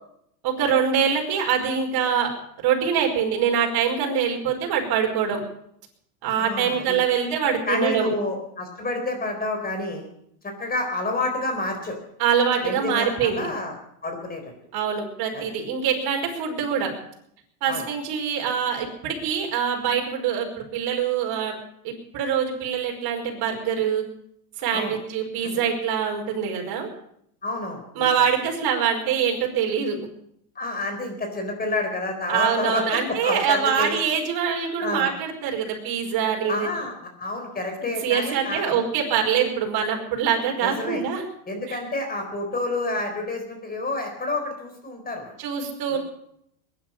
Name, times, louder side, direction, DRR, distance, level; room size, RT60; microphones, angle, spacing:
voice 1, 0.4-2.3 2.6-5.4 6.2-8.1 12.2-13.5 14.7-16.9 17.6-21.6 21.8-24.0 24.6-26.9 28.0-30.0 32.3-36.7 38.0-41.2 41.7-41.8 45.4-46.0, right 7 dB, 45° right, 1 dB, 5.2 m, -24 dB
voice 2, 6.3-7.0 7.7-10.1 10.4-12.0 12.6-13.7 14.0-14.5 15.3-15.5 17.7-17.9 24.7-25.0 25.5-25.6 27.4-28.3 30.6-34.0 34.8-35.1 36.5-36.9 37.2-38.8 40.6-41.0 41.5-45.4 45.9-46.0, left 2 dB, 20° left, 4 dB, 4.2 m, -29 dB
21.0 x 11.0 x 5.7 m, 0.72 s
supercardioid pair, 120°, 49 cm